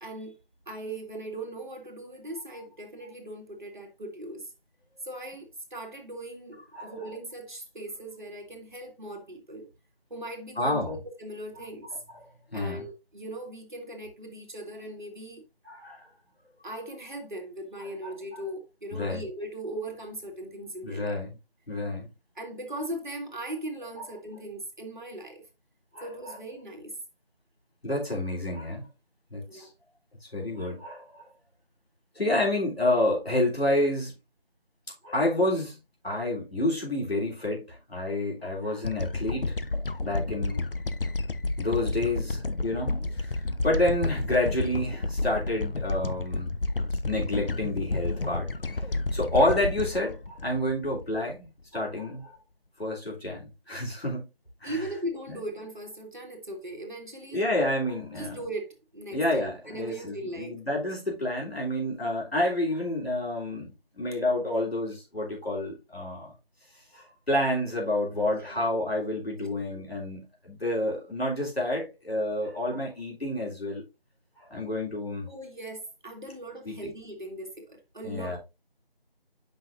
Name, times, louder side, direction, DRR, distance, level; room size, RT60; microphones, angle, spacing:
voice 1, 0.0-0.4 0.7-4.5 5.0-9.7 10.1-15.4 16.6-21.2 22.4-25.4 26.0-27.0 29.5-29.7 54.6-57.5 58.2-60.6 68.3-68.6 69.4-69.5 75.3-78.4, right 1 dB, 50° right, 1.8 m, -39 dB
voice 2, 10.6-11.0 11.8-11.9 12.5-12.9 15.7-16.0 18.0-18.4 18.9-19.2 20.8-21.4 21.7-22.1 24.0-24.1 25.9-26.4 27.8-28.9 29.3-29.7 30.2-31.2 32.2-34.1 35.0-39.5 40.0-40.6 41.6-43.4 43.6-46.5 47.0-48.8 49.1-52.3 52.8-54.3 54.6-54.9 55.3-55.4 57.3-58.4 59.1-66.3 66.9-73.8 74.4-75.3 76.7-76.9 78.0-78.4, left 1 dB, 90° left, 3.5 m, -29 dB
sound 1, 38.8-51.3, left 2 dB, 65° left, 0.6 m, -31 dB
7.7 x 5.6 x 2.6 m
figure-of-eight pair, 175°, 30 cm